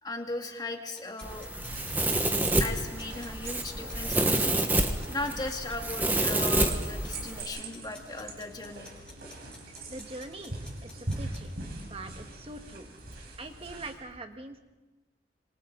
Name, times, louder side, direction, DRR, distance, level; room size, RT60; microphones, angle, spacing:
voice 1, 0.0-1.5 2.6-4.5 5.1-8.9, left 2 dB, 25° left, 3 dB, 2.0 m, -37 dB
sound 1, 0.9-11.4, left 2 dB, 5° left, 6.3 m, -51 dB
Domestic sounds home sounds, 1.2-7.4, right 1 dB, 10° right, 1.5 m, -28 dB
sound 2, 1.6-13.9, right 2 dB, 60° right, 5.1 m, -42 dB
voice 2, 9.9-10.5 10.8-11.5 11.8-12.9 13.4-14.6, right 2 dB, 35° right, 5 dB, 1.7 m, -43 dB
26.5 x 24.5 x 4.0 m, 1.1 s
head